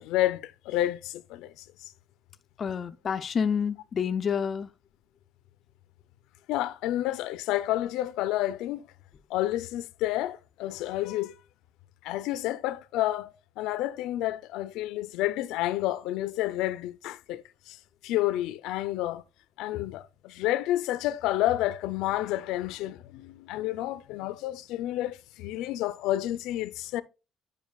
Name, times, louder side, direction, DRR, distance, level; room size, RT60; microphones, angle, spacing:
voice 1, 0.0-1.9 6.5-8.8 9.3-11.4 12.0-19.2 19.6-27.0, left 14 dB, 90° left, 0.5 m, -30 dB
voice 2, 2.6-4.7, left 7 dB, 30° left, 0.3 m, -28 dB
9.3 x 5.2 x 2.3 m
cardioid pair, 180°, 0 cm